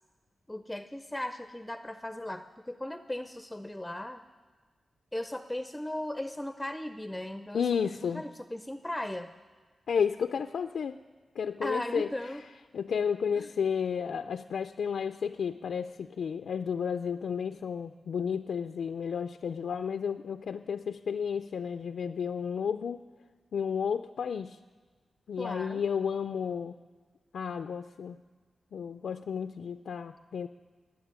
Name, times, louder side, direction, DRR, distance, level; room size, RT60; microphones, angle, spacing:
voice 1, 0.5-4.2 5.1-9.3 11.6-12.4 13.3-13.5 25.4-25.8, left 1 dB, 10° left, 9 dB, 0.5 m, -37 dB
voice 2, 7.5-8.2 9.9-11.0 11.4-12.1 12.7-23.0 23.5-24.6 25.3-26.8 27.3-28.2 28.7-30.5, left 7 dB, 90° left, 9 dB, 0.4 m, -32 dB
17.5 x 7.4 x 9.6 m, 1.4 s
cardioid pair, 75°, 0 cm